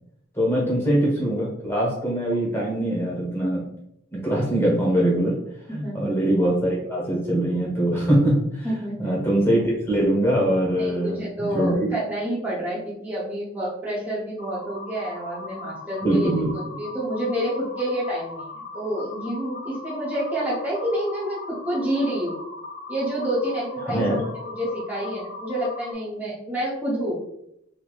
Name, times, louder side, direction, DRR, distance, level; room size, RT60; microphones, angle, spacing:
voice 1, 0.3-3.6 4.1-5.3 5.7-8.7 9.0-11.9 16.0-16.5 23.8-24.2, right 1 dB, 15° left, -4 dB, 1.0 m, -22 dB
voice 2, 5.8-6.2 8.6-9.2 10.8-16.4 16.8-22.3 22.9-27.2, equal, 10° right, -7 dB, 0.6 m, -28 dB
sound 1, 14.4-25.9, left 2 dB, 60° left, 0.8 m, -39 dB
3.3 x 2.7 x 2.3 m, 0.78 s
head